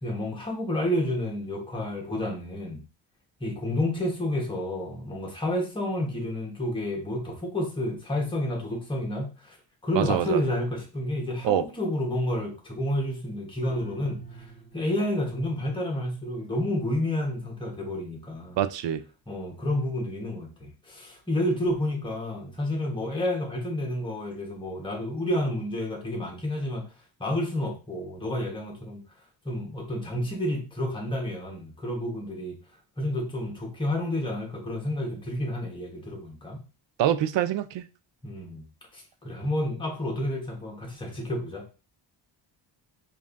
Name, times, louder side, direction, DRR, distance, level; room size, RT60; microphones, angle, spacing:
voice 1, 0.0-2.8 3.4-9.6 9.8-14.5 14.7-18.6 19.3-26.9 27.2-29.0 29.4-32.5 33.0-36.6 38.2-38.7 38.9-41.6, left 1 dB, 10° left, 1.1 m, -30 dB
voice 2, 9.9-10.4 11.4-11.6 18.6-19.0 37.0-37.8, right 11 dB, 80° right, 0.5 m, -25 dB
sound 1, 13.6-15.1, right 6 dB, 20° right, 0.8 m, -44 dB
5.2 x 2.7 x 2.5 m
wide cardioid pair, 140°, 43 cm